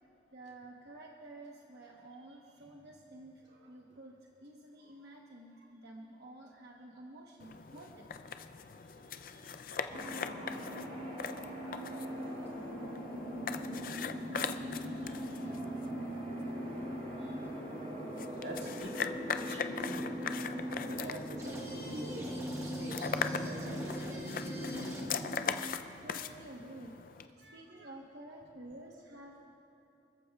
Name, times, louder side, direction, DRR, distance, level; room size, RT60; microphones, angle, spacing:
voice 1, 0.3-8.1 20.7-20.9 26.0-27.0 27.4-29.4, right 1 dB, 60° right, -1 dB, 1.1 m, -51 dB
sound 1, 7.4-27.3, left 6 dB, 50° left, 0.4 m, -41 dB
sound 2, 9.9-25.3, equal, 45° right, 3.7 m, -40 dB
voice 2, 18.4-20.1 21.0-23.8 27.4-27.9, right 1 dB, 80° right, -1 dB, 1.9 m, -46 dB
sound 3, 21.4-25.3, right 1 dB, 15° right, 1.4 m, -46 dB
29.5 x 14.0 x 2.4 m, 2.8 s
head